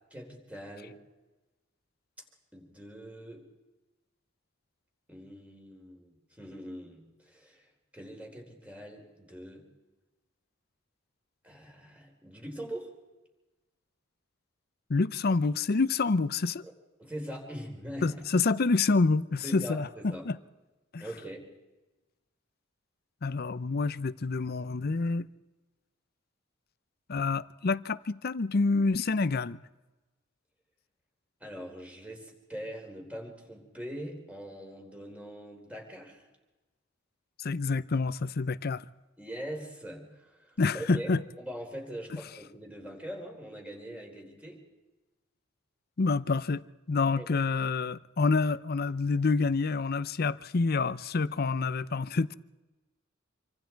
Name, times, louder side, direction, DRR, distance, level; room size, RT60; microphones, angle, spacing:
voice 1, 0.1-1.0 2.5-3.4 5.1-7.7 7.9-9.6 11.4-12.9 16.6-16.7 17.0-18.3 19.4-20.3 21.0-21.5 31.4-36.3 39.2-41.1 41.4-44.6 47.1-47.4, equal, 5° right, 4.2 m, -42 dB
voice 2, 14.9-16.6 18.0-19.9 20.3-20.4 20.9-21.0 23.2-25.3 27.1-29.6 37.4-38.8 40.6-41.2 46.0-46.6 46.9-52.3, left 4 dB, 50° left, 0.6 m, -27 dB
27.0 x 24.5 x 4.6 m
head